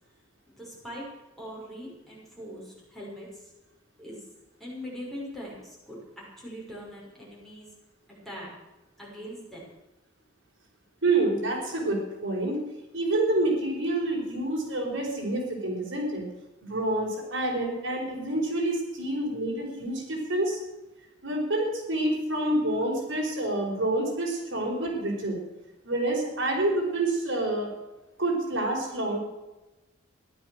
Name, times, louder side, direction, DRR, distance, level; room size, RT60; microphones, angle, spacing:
voice 1, 0.5-1.1 1.4-3.5 4.0-4.3 4.6-7.7 8.1-8.5 9.0-9.6, equal, ahead, -5 dB, 5.9 m, -41 dB
voice 2, 11.0-12.6 12.9-16.3 16.6-20.6 21.2-25.4 25.8-27.7 28.2-29.2, right 2 dB, 70° right, -2 dB, 5.0 m, -28 dB
15.0 x 12.0 x 6.4 m, 1.0 s
head